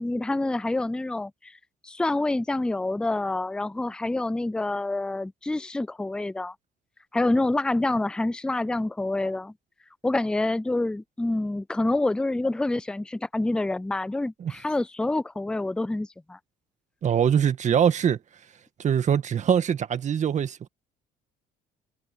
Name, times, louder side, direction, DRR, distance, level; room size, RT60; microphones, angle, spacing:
voice 1, 0.0-1.5 1.8-6.5 7.1-9.5 10.0-16.4, left 2 dB, 5° left, 0.4 m, -27 dB
voice 2, 17.0-18.2 18.8-20.7, right 8 dB, 45° right, 1.7 m, -23 dB
cardioid pair, 110°, 17 cm